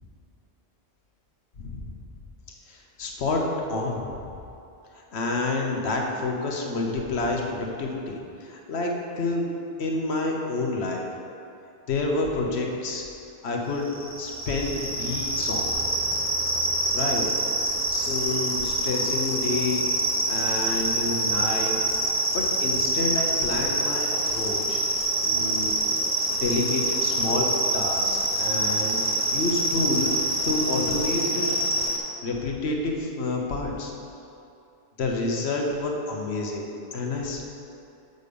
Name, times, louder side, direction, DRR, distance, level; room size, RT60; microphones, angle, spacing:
voice 1, 1.6-1.9 2.7-4.2 4.9-9.5 9.8-11.0 11.9-13.0 13.4-13.9 14.2-15.6 16.9-17.3 17.9-19.8 20.3-21.7 22.3-24.8 25.2-25.7 26.3-27.5 27.7-30.1 30.4-31.6 32.2-33.9 35.0-37.4, left 3 dB, 85° left, 0 dB, 1.2 m, -28 dB
sound 1, 13.8-32.0, right 1 dB, 15° right, 0.9 m, -26 dB
6.5 x 5.3 x 6.8 m, 2.7 s
omnidirectional pair, 1.1 m